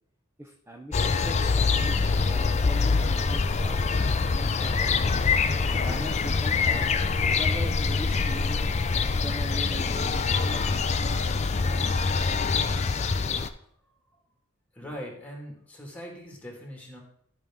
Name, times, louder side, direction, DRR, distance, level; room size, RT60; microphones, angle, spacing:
voice 1, 0.4-3.8 4.2-5.4 5.7-8.7 9.0-10.9, equal, 10° right, 1 dB, 0.7 m, -41 dB
sound 1, 0.9-13.5, left 4 dB, 30° left, 0.4 m, -25 dB
voice 2, 14.7-17.0, equal, 5° left, -1 dB, 2.1 m, -41 dB
13.5 x 5.5 x 3.6 m, 0.69 s
head